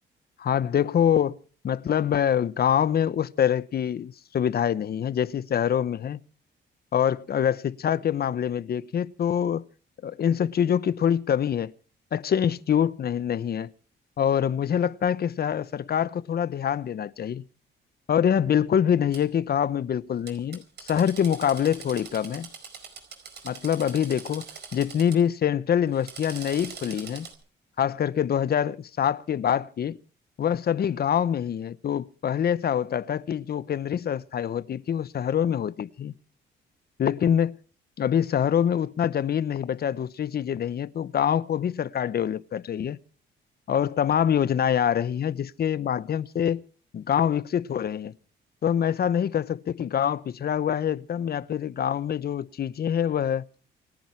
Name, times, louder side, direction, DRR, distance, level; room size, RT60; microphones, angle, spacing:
voice 1, 0.5-1.4 1.6-6.2 6.9-9.6 10.0-11.7 12.1-13.7 14.2-17.4 18.1-22.5 23.4-24.5 24.7-27.3 27.8-30.0 30.4-36.1 37.0-37.5 38.0-43.0 43.7-46.6 46.9-48.1 48.6-53.4, left 9 dB, 50° left, 0.9 m, -25 dB
Drill, 19.1-19.2 20.3-25.2 25.9-27.3, right 6 dB, 55° right, 4.8 m, -43 dB
28.5 x 10.0 x 4.7 m
cardioid pair, 90°, 20 cm